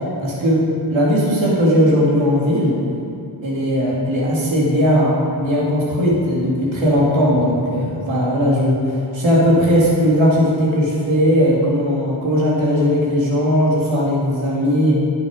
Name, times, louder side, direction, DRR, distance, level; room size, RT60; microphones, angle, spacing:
voice 1, 0.2-0.6 0.9-2.7 3.4-15.0, equal, 85° right, -5 dB, 2.7 m, -17 dB
11.0 x 6.3 x 5.1 m, 2.5 s
cardioid pair, 80°, 45 cm